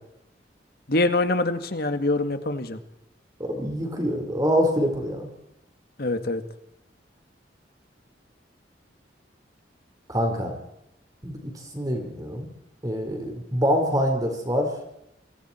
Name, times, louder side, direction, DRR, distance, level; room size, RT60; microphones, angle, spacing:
voice 1, 0.9-2.8 6.0-6.4, left 2 dB, 60° left, 9 dB, 2.0 m, -24 dB
voice 2, 3.4-5.3 10.1-10.5 11.2-12.5 12.8-14.7, equal, 20° right, 3 dB, 4.6 m, -25 dB
27.5 x 26.5 x 4.5 m, 0.82 s
head